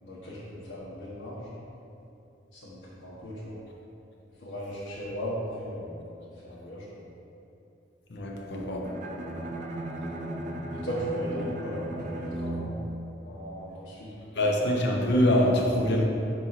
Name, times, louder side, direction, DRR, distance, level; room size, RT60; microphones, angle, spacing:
voice 1, 0.0-1.5 2.5-3.6 4.4-6.0 6.4-7.0 10.7-12.7 13.2-14.1, equal, 90° left, -10 dB, 1.2 m, -37 dB
voice 2, 8.1-8.9 14.4-16.0, left 1 dB, 65° left, -1 dB, 0.8 m, -24 dB
Bowed string instrument, 8.8-13.9, right 1 dB, 45° right, 0.6 m, -36 dB
5.6 x 4.5 x 4.1 m, 2.8 s
head